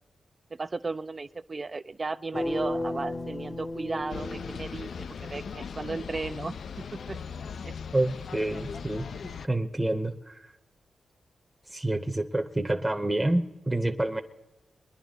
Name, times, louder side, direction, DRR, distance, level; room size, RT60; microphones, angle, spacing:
voice 1, 0.5-4.9 5.2-7.2 7.6-7.7, right 3 dB, 35° right, 10 dB, 0.4 m, -35 dB
sound 1, 2.3-5.4, left 1 dB, 35° left, 0.8 m, -34 dB
sound 2, 4.1-9.5, left 6 dB, 75° left, 0.4 m, -39 dB
voice 2, 7.9-9.1 9.4-10.4 11.7-14.2, right 1 dB, 15° right, 4 dB, 0.8 m, -28 dB
22.5 x 10.5 x 4.0 m, 1.1 s
cardioid pair, 75°, 0 cm